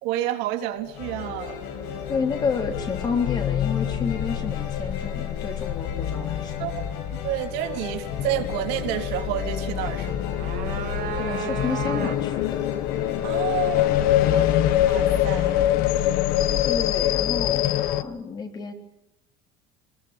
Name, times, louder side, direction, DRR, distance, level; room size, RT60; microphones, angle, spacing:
voice 1, 0.0-1.6 6.6-6.8 7.2-10.3 13.2-14.6 14.9-15.8, right 12 dB, 85° right, 5 dB, 3.5 m, -30 dB
sound 1, 0.9-16.2, left 5 dB, 90° left, 7.4 m, -38 dB
sound 2, 1.1-18.0, left 12 dB, 60° left, 1.3 m, -25 dB
voice 2, 2.1-6.7 11.1-12.6 14.2-14.5 16.6-18.7, left 5 dB, 25° left, 5 dB, 3.3 m, -30 dB
sound 3, 10.1-12.5, right 11 dB, 60° right, 2.3 m, -33 dB
27.5 x 21.0 x 8.8 m, 0.82 s
cardioid pair, 175°, 17 cm